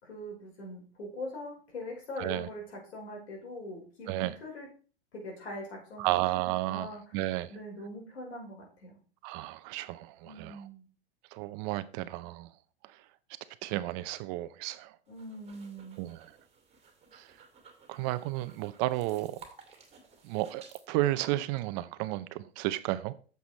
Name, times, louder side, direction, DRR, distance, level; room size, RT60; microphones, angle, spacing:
voice 1, 0.0-4.7 5.1-7.0 7.5-9.0 10.2-10.8 15.1-16.0, left 1 dB, 80° left, 5.1 m, -42 dB
voice 2, 2.2-2.5 4.1-4.4 6.0-7.5 9.2-10.6 11.3-12.5 12.8-13.0 13.6-15.0 16.0-16.3 17.1-17.3 17.9-19.4 20.2-23.1, right 16 dB, 40° right, 0.6 m, -32 dB
sound 1, 15.1-20.8, right 5 dB, 20° right, 2.1 m, -56 dB
8.7 x 7.0 x 4.2 m
hypercardioid pair, 115°, 32 cm